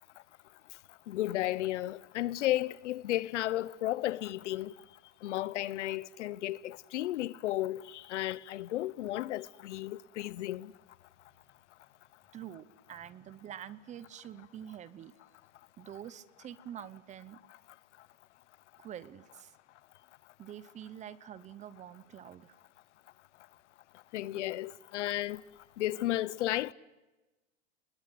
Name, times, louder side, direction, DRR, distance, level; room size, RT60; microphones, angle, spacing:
voice 1, 1.1-4.7 5.2-10.7 24.1-25.4 25.8-26.7, left 15 dB, 70° left, 1.0 m, -33 dB
voice 2, 12.3-15.1 15.8-17.4 18.8-19.6 20.4-22.6 26.1-26.2, right 10 dB, 20° right, 0.9 m, -46 dB
29.5 x 21.5 x 7.8 m
supercardioid pair, 145°, 37 cm